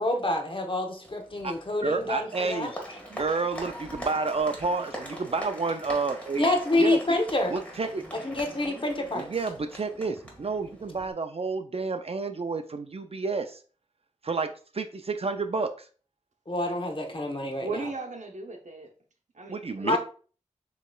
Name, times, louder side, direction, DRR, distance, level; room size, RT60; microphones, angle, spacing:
voice 1, 0.0-2.7 6.4-7.5 8.2-9.3 16.5-17.9 19.8-20.0, left 2 dB, 40° left, 3 dB, 1.0 m, -27 dB
Applause, 1.0-11.1, equal, 10° left, 1.7 m, -42 dB
voice 2, 1.8-2.7 3.1-6.5 6.8-7.0 7.5-8.0 9.1-13.6 14.2-15.9 19.5-20.0, right 4 dB, 50° right, 8 dB, 0.4 m, -30 dB
voice 3, 17.6-18.9 19.3-20.0, right 3 dB, 70° right, 3 dB, 0.8 m, -37 dB
6.3 x 3.1 x 2.3 m, 0.40 s
cardioid pair, 40°, 13 cm